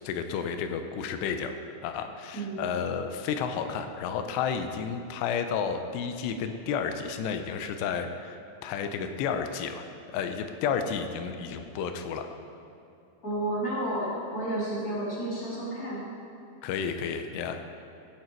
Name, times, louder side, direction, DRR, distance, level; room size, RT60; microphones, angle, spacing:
voice 1, 0.0-1.6 1.8-9.8 10.1-12.3 16.6-17.7, left 6 dB, 80° left, 7 dB, 2.8 m, -31 dB
voice 2, 2.3-2.7 13.2-16.0, right 1 dB, 25° left, -8 dB, 2.8 m, -31 dB
16.0 x 7.7 x 4.5 m, 2.8 s
omnidirectional pair, 5.0 m